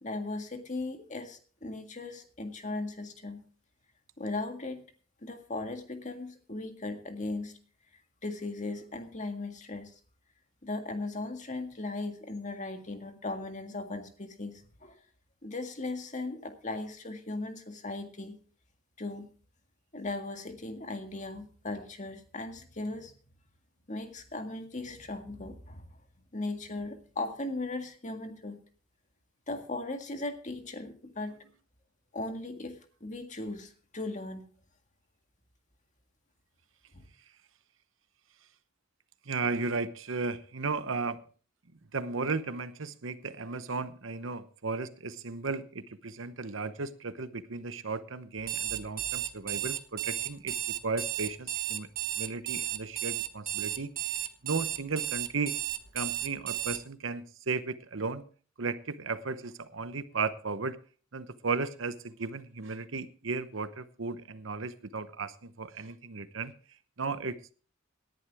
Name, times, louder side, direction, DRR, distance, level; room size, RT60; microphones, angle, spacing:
voice 1, 0.0-3.4 4.2-4.8 5.2-7.5 8.2-9.9 10.6-15.0 15.4-18.4 19.0-19.3 19.9-23.1 23.9-25.8 26.3-28.6 29.5-31.4 32.1-34.5 36.9-37.1, left 2 dB, 35° left, 6 dB, 1.8 m, -38 dB
voice 2, 39.3-41.2 41.9-50.5 50.8-51.9 52.2-55.5 55.9-58.2 58.6-60.8 61.1-66.5 67.0-67.5, right 4 dB, 70° right, 13 dB, 0.9 m, -35 dB
Alarm, 48.4-56.8, right 14 dB, 45° right, 1.0 m, -33 dB
18.0 x 10.5 x 3.5 m, 0.40 s
head